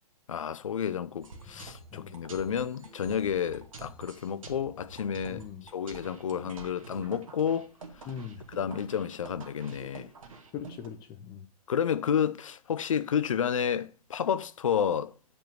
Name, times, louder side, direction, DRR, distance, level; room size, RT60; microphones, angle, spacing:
voice 1, 0.3-5.4 5.7-7.7 8.5-10.1 11.7-15.1, left 8 dB, 55° left, 0.7 m, -30 dB
sound 1, 1.2-10.9, right 4 dB, 55° right, 2.1 m, -48 dB
voice 2, 5.3-5.7 8.0-8.4 10.5-11.4, left 8 dB, 20° left, 0.8 m, -41 dB
8.8 x 5.4 x 6.5 m
figure-of-eight pair, 120°, 20 cm